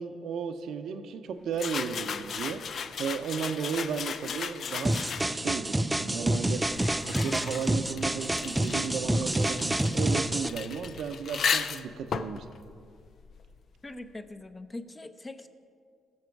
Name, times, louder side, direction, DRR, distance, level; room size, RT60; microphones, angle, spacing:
voice 1, 0.0-2.6 3.0-5.0 5.3-6.6 7.2-12.5, right 6 dB, 70° right, 8 dB, 0.8 m, -34 dB
sound 1, 1.5-5.6 6.3-13.7, left 6 dB, 55° left, 0.5 m, -36 dB
sound 2, 4.8-10.5, right 1 dB, 10° right, 0.5 m, -28 dB
voice 2, 13.8-15.5, left 2 dB, 25° left, 8 dB, 0.7 m, -42 dB
19.5 x 6.9 x 4.7 m, 2.3 s
cardioid pair, 90°, 0 cm